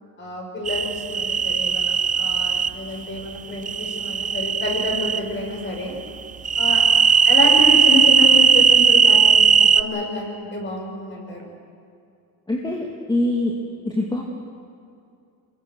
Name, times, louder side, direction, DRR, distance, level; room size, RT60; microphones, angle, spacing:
voice 1, 0.2-5.9 6.6-6.8 7.3-11.5, left 2 dB, 25° left, 0 dB, 7.0 m, -28 dB
sound 1, 0.7-2.7 3.7-5.2 6.4-9.8, right 7 dB, 20° right, 0.5 m, -17 dB
voice 2, 12.5-13.6 13.8-14.2, left 1 dB, 10° left, -2 dB, 2.4 m, -24 dB
27.0 x 22.0 x 6.4 m, 2.5 s
cardioid pair, 125°, 43 cm